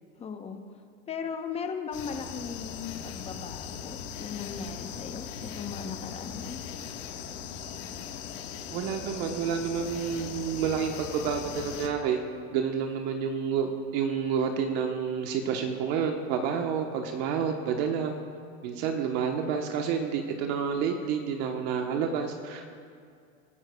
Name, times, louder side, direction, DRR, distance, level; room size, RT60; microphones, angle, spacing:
voice 1, 0.2-0.6 1.1-6.6, left 6 dB, 15° left, 5 dB, 0.8 m, -37 dB
sound 1, 1.9-11.9, left 8 dB, 60° left, 1.6 m, -39 dB
voice 2, 8.7-12.2 12.5-18.1 18.6-22.7, right 7 dB, 45° right, 4 dB, 1.1 m, -29 dB
24.0 x 12.0 x 2.3 m, 2.2 s
supercardioid pair, 140°, 43 cm